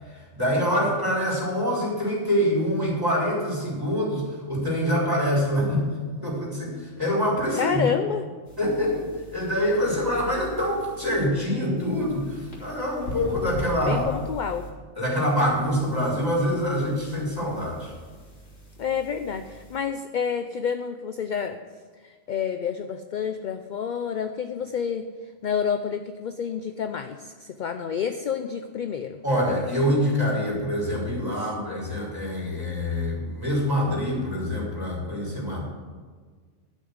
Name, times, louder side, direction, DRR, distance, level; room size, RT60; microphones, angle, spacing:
voice 1, 0.1-5.9 6.2-7.9 8.6-14.1 15.0-17.9 29.2-35.6, equal, 15° right, -5 dB, 4.0 m, -25 dB
voice 2, 7.6-8.2 13.9-14.7 18.8-21.6 22.3-25.1 25.4-29.2 31.4-31.5, left 7 dB, 55° left, 8 dB, 0.6 m, -29 dB
sound 1, 8.4-11.3 11.8-14.7 15.2-19.8, equal, 75° left, 3.0 m, -41 dB
12.0 x 6.3 x 8.0 m, 1.5 s
omnidirectional pair, 1.2 m